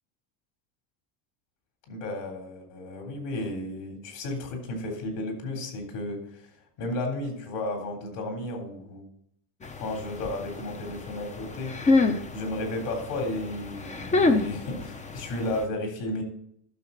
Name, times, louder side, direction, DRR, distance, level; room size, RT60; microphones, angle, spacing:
voice 1, 1.9-6.5 6.8-9.1 9.8-12.0 12.3-16.2, left 1 dB, 60° left, 2 dB, 3.7 m, -33 dB
sound 1, 9.6-15.6, left 3 dB, 15° left, 0.5 m, -28 dB
12.0 x 6.5 x 3.9 m, 0.71 s
cardioid pair, 145°, 49 cm